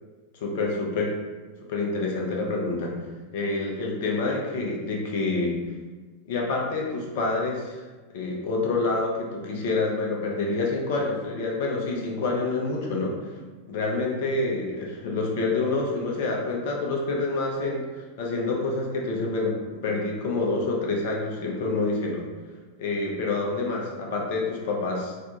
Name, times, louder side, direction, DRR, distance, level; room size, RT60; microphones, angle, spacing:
voice 1, 0.4-1.1 1.7-2.9 3.3-5.5 6.3-7.8 8.1-13.1 13.7-17.8 18.2-22.2 22.8-25.1, left 3 dB, 50° left, -1 dB, 0.5 m, -27 dB
2.5 x 2.1 x 2.8 m, 1.3 s
figure-of-eight pair, 90°, 0 cm